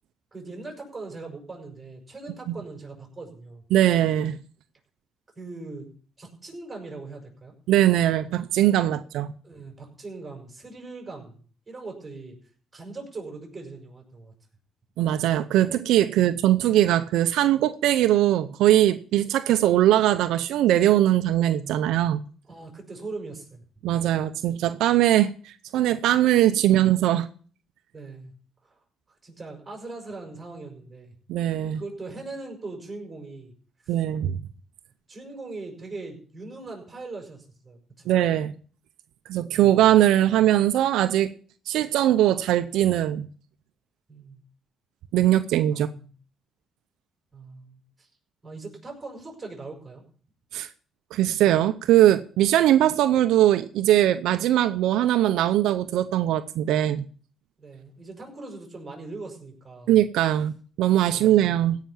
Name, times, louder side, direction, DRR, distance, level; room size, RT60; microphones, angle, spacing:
voice 1, 0.3-3.6 5.4-5.9 6.2-7.5 9.4-12.4 12.7-14.3 16.1-16.4 22.4-24.0 27.9-28.3 28.6-28.8 29.2-31.1 31.7-33.5 33.8-33.9 35.1-38.1 39.5-39.8 44.1-44.4 45.7-46.1 47.3-48.1 48.4-50.0 57.6-60.0 61.1-61.6, right 3 dB, 25° right, 6.3 m, -40 dB
voice 2, 3.7-4.4 7.7-9.3 15.0-22.2 23.8-27.3 31.3-31.8 33.9-34.4 38.1-38.5 39.3-41.3 41.7-43.3 45.1-45.9 50.5-50.7 51.1-57.0 59.9-61.8, right 13 dB, 90° right, 0.6 m, -21 dB
16.5 x 5.8 x 7.1 m
cardioid pair, 90°, 0 cm